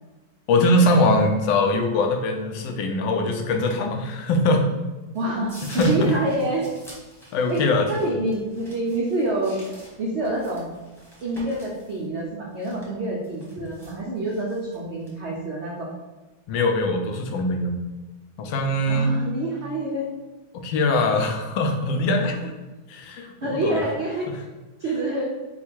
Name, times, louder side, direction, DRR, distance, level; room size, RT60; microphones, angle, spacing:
voice 1, 0.5-4.6 5.7-6.1 7.3-7.9 16.5-17.7 18.4-19.1 20.5-22.5 22.9-23.8, left 1 dB, 90° left, 4 dB, 1.3 m, -22 dB
sound 1, 5.1-15.5, equal, ahead, 0.7 m, -46 dB
voice 2, 5.1-6.7 7.5-7.6 7.9-9.6 10.0-10.7 11.2-15.9 18.9-20.1 23.4-24.4 24.8-25.3, right 1 dB, 75° right, -3 dB, 0.6 m, -27 dB
4.4 x 2.3 x 4.4 m, 1.2 s
omnidirectional pair, 1.9 m